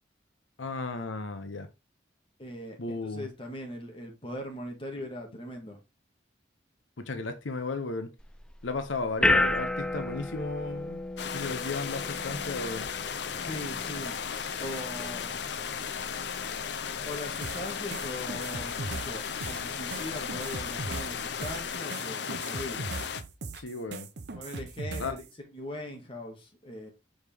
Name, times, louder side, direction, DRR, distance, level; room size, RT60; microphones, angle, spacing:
voice 1, 0.6-1.7 2.8-3.3 7.0-8.1 8.6-11.0 11.3-12.9 23.5-24.1 25.0-25.1, left 3 dB, 90° left, 0.8 m, -34 dB
voice 2, 2.4-5.8 13.4-14.1 14.6-15.3 17.1-22.9 24.3-25.2 25.5-26.9, left 1 dB, 30° left, 1.8 m, -40 dB
sound 1, 8.2-21.7, left 1 dB, 5° left, 0.4 m, -35 dB
sound 2, 11.2-23.2, left 7 dB, 60° left, 0.6 m, -35 dB
sound 3, 17.4-25.3, right 3 dB, 60° right, 0.8 m, -39 dB
6.5 x 4.8 x 3.5 m
head